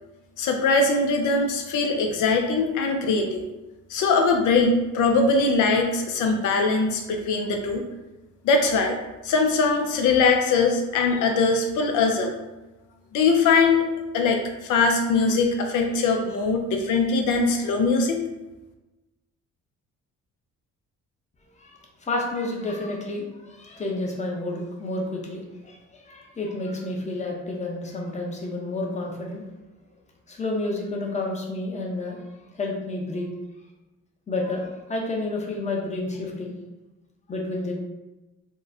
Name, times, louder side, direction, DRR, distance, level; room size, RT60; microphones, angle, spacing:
voice 1, 0.4-3.4 3.9-7.9 8.4-9.0 9.2-12.3 13.1-13.9 14.1-18.2, left 4 dB, 80° left, 3 dB, 0.5 m, -21 dB
voice 2, 21.6-29.4 30.3-32.2 32.5-33.3 34.3-36.5 37.3-37.7, left 2 dB, 25° left, 0 dB, 0.7 m, -30 dB
3.7 x 2.1 x 2.6 m, 1.1 s
cardioid pair, 90°, 30 cm